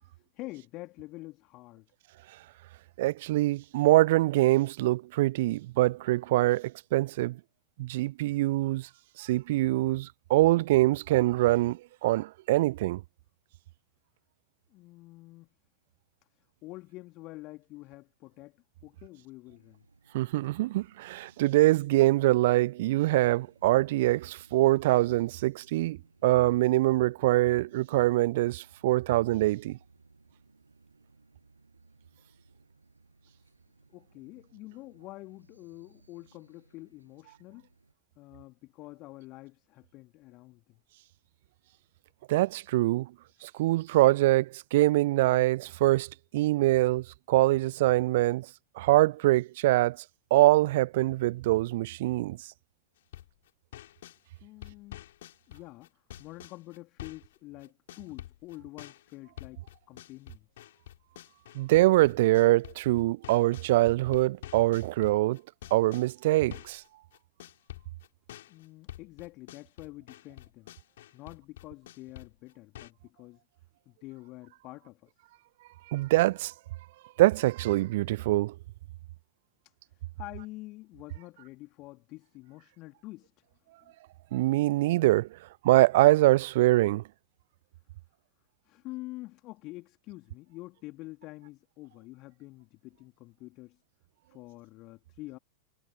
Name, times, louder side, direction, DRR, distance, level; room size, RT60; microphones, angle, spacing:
voice 1, 0.0-1.9 14.7-15.5 16.3-19.9 33.9-37.7 38.2-40.8 54.4-55.1 55.5-60.5 68.5-70.7 71.1-73.4 73.8-75.1 79.6-83.3 83.8-83.9 88.6-93.8 94.3-95.4, left 20 dB, 40° left, 3.3 m, -47 dB
voice 2, 3.0-7.4 7.8-8.9 9.2-13.0 20.1-29.8 42.3-43.1 43.4-48.5 48.8-50.0 50.3-52.4 61.5-65.4 65.7-66.8 75.9-76.5 77.2-78.5 84.3-85.3 85.6-87.0, right 17 dB, 55° right, 0.4 m, -24 dB
sound 1, 19.4-37.9, right 3 dB, 80° right, 7.4 m, -62 dB
sound 2, 53.0-54.2 54.6-57.4 57.6-63.7 64.1-72.9, left 13 dB, 60° left, 5.9 m, -47 dB
figure-of-eight pair, 90°, 0 cm